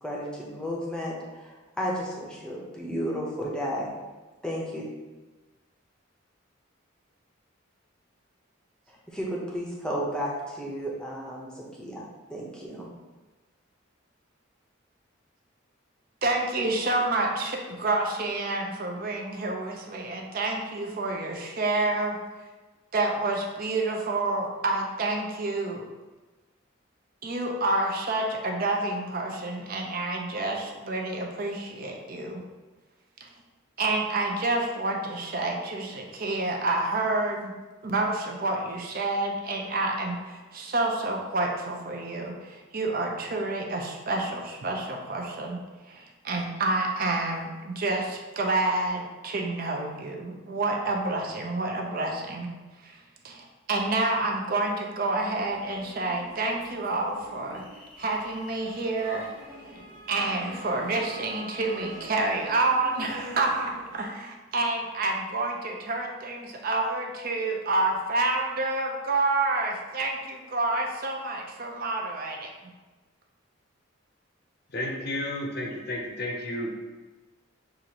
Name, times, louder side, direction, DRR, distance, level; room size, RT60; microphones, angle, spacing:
voice 1, 0.0-3.9 4.4-4.8 9.1-12.9, equal, 5° left, -4 dB, 0.7 m, -33 dB
voice 2, 16.2-22.2 22.9-25.8 27.2-32.4 33.8-37.5 37.8-45.6 45.9-52.5 52.8-52.9 53.2-57.6 58.0-59.3 60.1-72.5, right 2 dB, 45° right, 1 dB, 0.5 m, -28 dB
sound 1, 55.3-64.0, equal, 85° left, 0.9 m, -45 dB
voice 3, 74.7-76.7, left 1 dB, 50° left, 0 dB, 0.7 m, -32 dB
6.3 x 2.5 x 2.9 m, 1.2 s
head